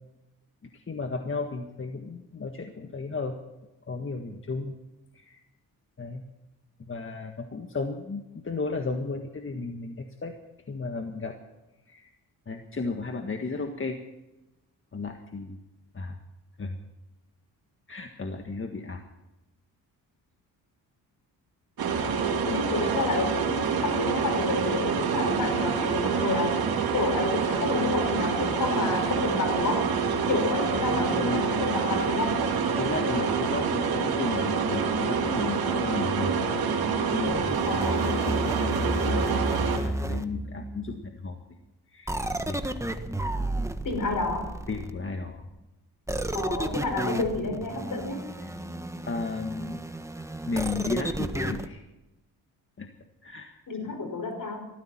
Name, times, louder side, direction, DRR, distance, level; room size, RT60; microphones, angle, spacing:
voice 1, 0.7-3.3 3.9-4.8 5.1-5.4 6.0-6.2 6.9-10.3 10.7-11.4 11.9-12.1 12.5-14.0 14.9-15.6 15.9-16.2 16.6-16.8 17.9-19.0 30.8-31.4 32.8-36.3 37.1-37.6 38.1-41.4 41.9-42.6 44.7-45.4 48.4-48.5 49.1-49.8 50.4-51.8 52.8-52.9 53.2-53.5 53.8-53.9, left 3 dB, 30° left, 5 dB, 1.6 m, -34 dB
sound 1, 21.8-39.8, right 5 dB, 65° right, 2.9 m, -27 dB
voice 2, 22.4-26.6 26.9-29.9 30.3-32.5 37.7-38.2 43.8-44.6 46.3-48.3 53.7-54.7, left 3 dB, 55° left, 5 dB, 5.7 m, -30 dB
sound 2, 37.2-41.0 42.1-45.1 46.1-51.7, right 1 dB, 5° right, 1.5 m, -32 dB
19.5 x 14.5 x 4.4 m, 0.99 s
cardioid pair, 75°, 39 cm